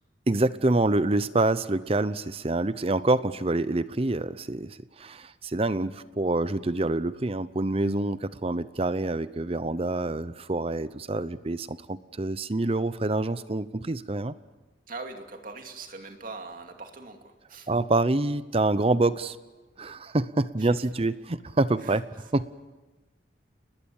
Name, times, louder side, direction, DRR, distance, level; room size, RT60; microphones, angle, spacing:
voice 1, 0.3-14.3 17.7-19.4 19.8-22.0 22.3-22.5, right 2 dB, 35° right, 14 dB, 0.7 m, -26 dB
voice 2, 14.9-17.7 20.6-20.9 21.8-22.0, right 3 dB, 50° right, 4 dB, 2.6 m, -42 dB
30.0 x 20.0 x 7.2 m, 1.2 s
head